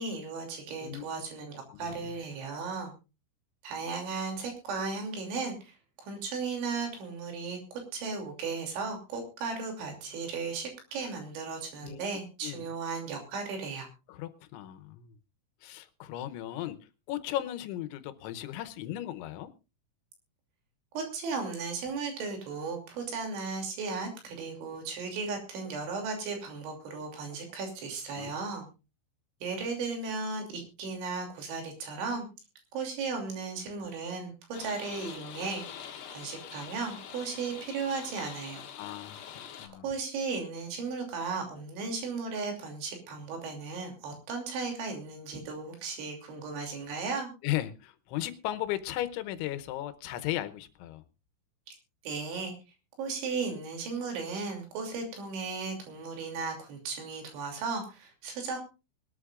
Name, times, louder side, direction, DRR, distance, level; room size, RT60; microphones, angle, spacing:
voice 1, 0.0-2.9 3.6-7.6 7.9-13.9 21.0-28.7 29.4-32.3 32.7-38.6 39.8-47.3 52.0-52.5 53.0-58.6, right 4 dB, 75° right, 3 dB, 5.2 m, -36 dB
voice 2, 1.7-2.1 11.8-12.0 12.4-12.7 14.1-15.2 15.6-16.8 17.1-19.5 28.2-28.3 38.8-39.2 39.6-39.9 47.4-51.0, left 13 dB, 80° left, 12 dB, 3.2 m, -36 dB
sound 1, 34.5-39.7, left 9 dB, 60° left, 2.9 m, -45 dB
22.0 x 13.0 x 2.5 m, 0.29 s
omnidirectional pair, 5.4 m